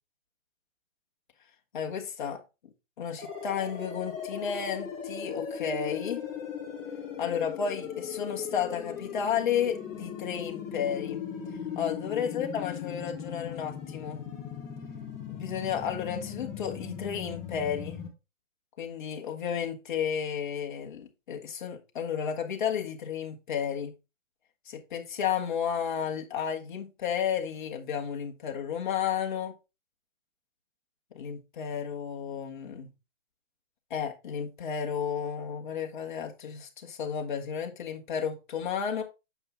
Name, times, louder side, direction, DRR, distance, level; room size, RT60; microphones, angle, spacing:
voice 1, 1.7-2.4 3.0-6.2 7.2-11.2 11.7-14.2 15.3-18.0 18.8-23.9 24.7-29.5 31.1-32.9 33.9-39.0, left 7 dB, 40° left, 1.5 m, -32 dB
sound 1, 3.2-18.1, left 8 dB, 10° left, 1.0 m, -38 dB
7.1 x 5.3 x 3.7 m
hypercardioid pair, 160°, 39 cm